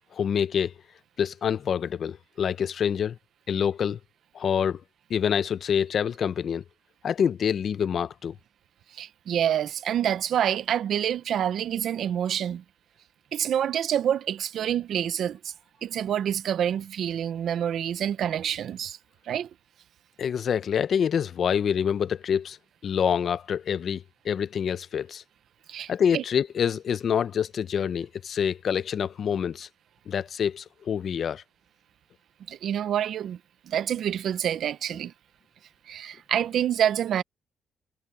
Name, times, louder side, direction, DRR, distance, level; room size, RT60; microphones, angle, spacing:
voice 1, 0.1-0.7 1.2-3.2 3.5-4.0 4.3-4.8 5.1-6.6 7.0-8.3 20.2-22.6 22.8-25.2 25.9-29.7 30.1-31.4, left 8 dB, 55° left, 0.8 m, -26 dB
voice 2, 8.9-12.6 13.3-15.5 15.8-19.0 19.3-19.5 25.7-26.2 32.5-33.4 33.7-35.1 35.9-37.2, right 10 dB, 70° right, 1.0 m, -27 dB
cardioid pair, 90°, 0 cm